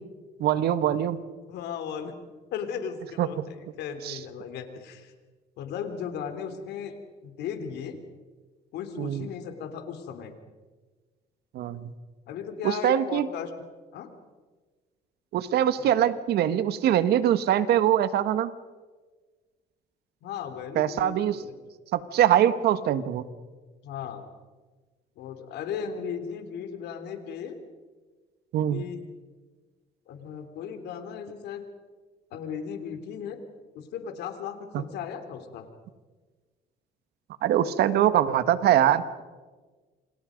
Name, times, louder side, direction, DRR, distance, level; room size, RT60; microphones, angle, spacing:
voice 1, 0.4-1.2 3.2-3.4 4.0-4.2 9.0-9.3 11.5-11.9 12.6-13.3 15.3-18.5 20.7-21.4 21.9-23.2 28.5-28.8 34.7-34.8 37.4-39.2, right 11 dB, 70° right, 13 dB, 1.6 m, -23 dB
voice 2, 1.5-2.2 2.5-5.1 5.6-6.9 7.2-8.0 8.7-10.3 12.3-13.5 13.9-14.1 15.8-15.9 20.2-21.5 23.8-24.2 25.2-27.6 28.7-29.0 30.1-31.6 32.3-33.4 33.7-35.7, left 7 dB, 80° left, 7 dB, 3.7 m, -36 dB
29.0 x 26.5 x 5.3 m, 1.4 s
cardioid pair, 110°, 17 cm